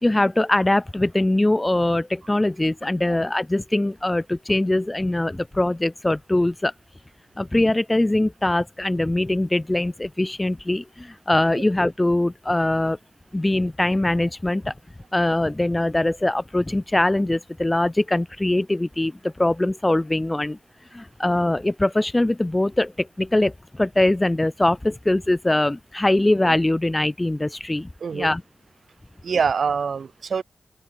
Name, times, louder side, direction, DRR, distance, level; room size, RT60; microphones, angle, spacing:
voice 1, 0.0-6.7 7.4-13.0 13.3-14.7 15.1-20.6 20.9-28.4, left 1 dB, 20° left, 2.4 m, -22 dB
voice 2, 28.0-28.3 29.2-30.4, right 6 dB, 75° right, 4.4 m, -25 dB
open air
cardioid pair, 70°, 0 cm